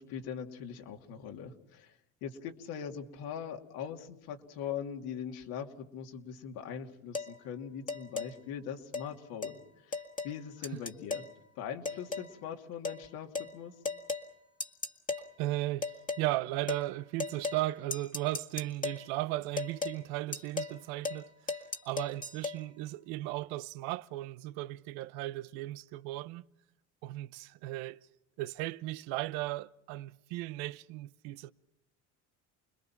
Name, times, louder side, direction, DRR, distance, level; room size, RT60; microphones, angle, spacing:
voice 1, 0.0-1.9 2.2-9.6 9.9-11.2 11.6-13.8, left 8 dB, 70° left, 2.8 m, -41 dB
sound 1, 7.1-7.3 7.9-8.3 8.9-9.1 9.4-9.6 9.9-10.4 10.6-11.3 11.9-12.3 12.8-13.0 13.4-13.5 13.9-14.3 14.6-15.3 15.8-16.3 16.7-16.9 17.2-17.7 17.9-19.0 19.6-20.0 20.3-20.8 21.0-21.2 21.5-22.6, left 3 dB, 20° left, 1.8 m, -36 dB
voice 2, 15.4-21.3 21.8-26.4 27.0-28.0 28.4-31.5, right 17 dB, 75° right, 0.9 m, -36 dB
30.0 x 21.0 x 5.9 m
supercardioid pair, 90°, 37 cm